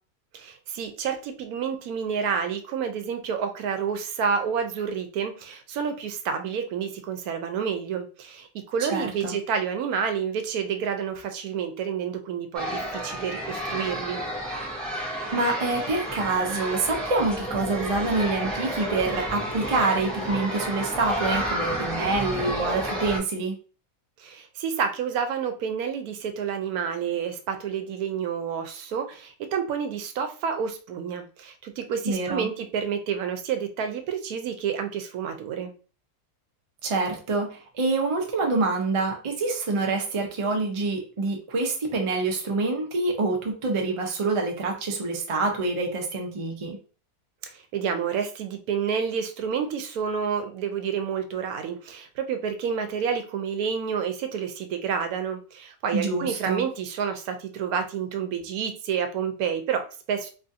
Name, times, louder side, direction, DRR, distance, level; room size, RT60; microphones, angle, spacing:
voice 1, 0.3-14.2 24.2-35.7 47.4-60.3, right 7 dB, 85° right, 7 dB, 1.1 m, -29 dB
voice 2, 8.9-9.4 15.3-23.6 32.0-32.5 36.8-46.8 55.9-56.6, right 3 dB, 50° right, 2 dB, 0.3 m, -26 dB
sound 1, 12.5-23.2, equal, ahead, 0.6 m, -31 dB
3.0 x 2.4 x 2.6 m, 0.37 s
omnidirectional pair, 1.5 m